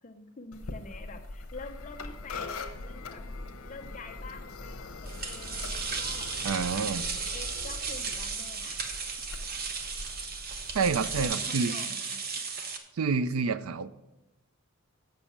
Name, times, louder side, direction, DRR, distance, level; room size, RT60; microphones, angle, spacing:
voice 1, 0.0-3.2 3.6-6.3 7.3-8.9 11.2-12.4, left 3 dB, 35° left, 5 dB, 0.6 m, -46 dB
sound 1, 0.5-11.2, left 3 dB, 85° left, 0.8 m, -42 dB
sound 2, 1.5-8.4, equal, 20° right, 1.4 m, -47 dB
sound 3, 5.1-12.8, right 5 dB, 45° right, 0.8 m, -35 dB
voice 2, 6.4-7.0 10.7-11.7 13.0-13.9, right 5 dB, 70° right, 15 dB, 0.4 m, -28 dB
6.9 x 6.2 x 7.1 m, 0.97 s
head